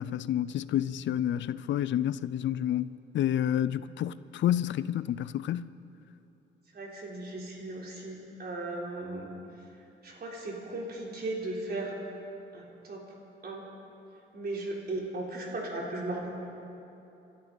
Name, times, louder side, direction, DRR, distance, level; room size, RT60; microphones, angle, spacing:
voice 1, 0.0-5.7, left 11 dB, 75° left, 0.4 m, -29 dB
voice 2, 6.7-9.3 10.0-12.0 12.5-13.0 13.4-13.6 14.3-16.3, right 2 dB, 55° right, 3.7 m, -36 dB
26.5 x 12.5 x 4.0 m
cardioid pair, 90°, 19 cm